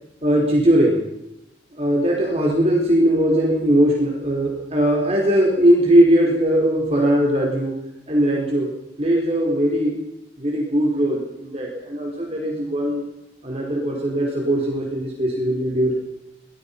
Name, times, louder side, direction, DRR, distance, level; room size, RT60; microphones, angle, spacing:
voice 1, 0.2-1.0 1.8-7.8 8.1-8.7 9.0-10.0 10.4-13.0 13.4-15.9, right 1 dB, 35° right, -2 dB, 4.9 m, -19 dB
24.5 x 19.0 x 5.7 m, 0.87 s
head